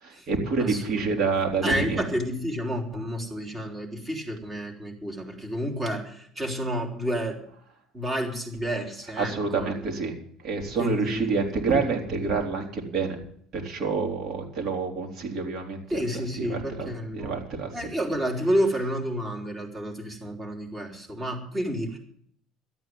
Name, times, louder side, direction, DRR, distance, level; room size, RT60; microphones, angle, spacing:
voice 1, 0.0-2.0 9.2-10.2 10.4-13.2 13.5-16.0 16.4-17.7, right 4 dB, 50° right, 2 dB, 3.8 m, -28 dB
voice 2, 0.6-1.1 1.6-7.4 7.9-9.9 10.8-11.4 15.9-17.3 17.7-22.0, equal, 15° right, 1 dB, 3.8 m, -30 dB
13.0 x 9.1 x 9.3 m, 0.65 s
cardioid pair, 125°, 0 cm